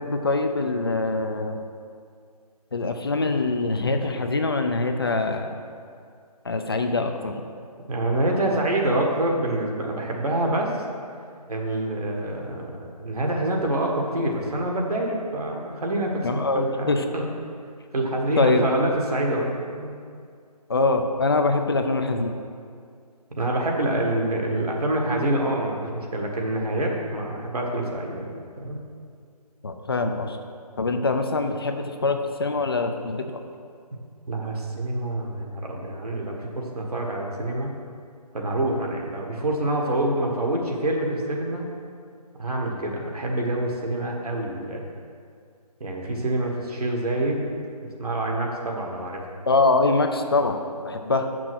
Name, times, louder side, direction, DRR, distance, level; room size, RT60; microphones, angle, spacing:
voice 1, 0.0-1.6 2.7-5.5 6.4-7.4 16.2-17.0 18.4-18.6 20.7-22.3 29.6-30.4 30.8-33.3 49.5-51.3, left 3 dB, 35° left, 5 dB, 0.5 m, -24 dB
voice 2, 7.9-10.8 11.5-17.2 17.9-20.0 23.4-28.8 34.3-37.7 38.3-41.7 42.4-44.8 45.8-47.5 48.0-49.2, right 1 dB, 70° right, 0 dB, 1.7 m, -26 dB
6.7 x 6.0 x 6.2 m, 2.2 s
figure-of-eight pair, 165°, 21 cm